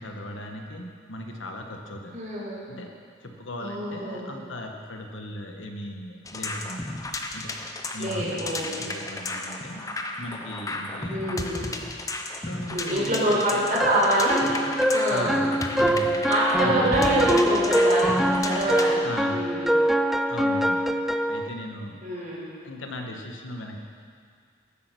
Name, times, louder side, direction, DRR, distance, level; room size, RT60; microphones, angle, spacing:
voice 1, 0.0-2.1 2.7-2.9 3.2-7.0 7.3-11.5 12.5-13.9 15.1-16.2 16.6-17.3 19.0-19.5 20.3-20.9 21.3-22.0 22.6-23.8, left 1 dB, 80° left, 3 dB, 1.4 m, -38 dB
voice 2, 2.1-2.6 3.6-4.3 8.0-8.9 11.1-11.7 12.7-14.5 14.9-15.4 16.3-19.0 19.3-19.8 22.0-22.5, right 1 dB, 40° right, -6 dB, 4.3 m, -26 dB
sound 1, 6.2-18.9, left 2 dB, 15° left, 0.7 m, -34 dB
sound 2, 13.8-21.5, equal, ahead, 0.4 m, -24 dB
16.0 x 8.7 x 6.3 m, 2.1 s
head